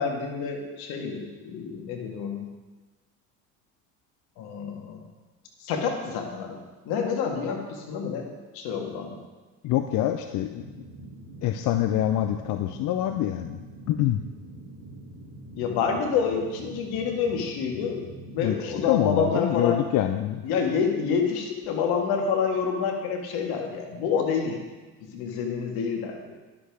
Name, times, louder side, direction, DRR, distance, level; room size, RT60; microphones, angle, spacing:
voice 1, 0.0-2.4 4.4-5.0 5.6-8.3 8.5-9.2 15.5-18.1 18.3-19.8 20.4-24.6 25.1-26.3, left 6 dB, 65° left, 3 dB, 1.8 m, -28 dB
voice 2, 9.6-10.6 11.4-13.6 13.9-14.2 18.4-20.4, left 12 dB, 45° left, 7 dB, 0.5 m, -25 dB
sound 1, 9.8-20.8, right 2 dB, 60° right, 3.1 m, -45 dB
11.0 x 6.8 x 3.5 m, 1.3 s
hypercardioid pair, 75°, 41 cm